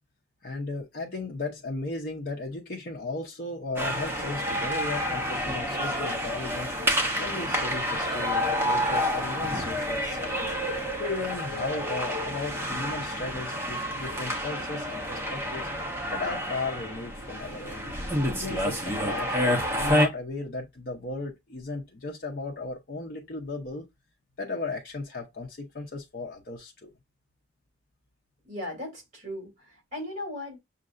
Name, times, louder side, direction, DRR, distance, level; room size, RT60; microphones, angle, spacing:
voice 1, 0.4-15.7 16.1-18.0 18.3-23.9 24.4-26.9, left 3 dB, 55° left, 0.8 m, -36 dB
sound 1, 3.8-20.1, equal, 15° right, 0.9 m, -29 dB
voice 2, 28.5-30.6, left 1 dB, 40° right, 2.9 m, -37 dB
6.4 x 2.6 x 2.5 m
head